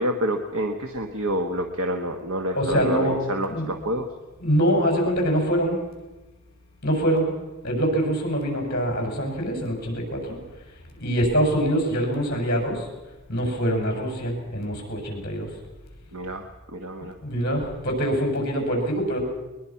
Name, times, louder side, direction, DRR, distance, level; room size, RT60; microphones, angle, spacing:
voice 1, 0.0-4.1 16.1-17.1, right 1 dB, 70° right, 5 dB, 1.4 m, -28 dB
voice 2, 2.5-3.2 3.5-3.7 4.4-5.8 6.8-7.3 7.6-10.4 11.0-12.9 13.3-15.5 17.0-19.2, equal, 45° left, 2 dB, 6.2 m, -24 dB
21.5 x 21.5 x 5.9 m, 1.1 s
head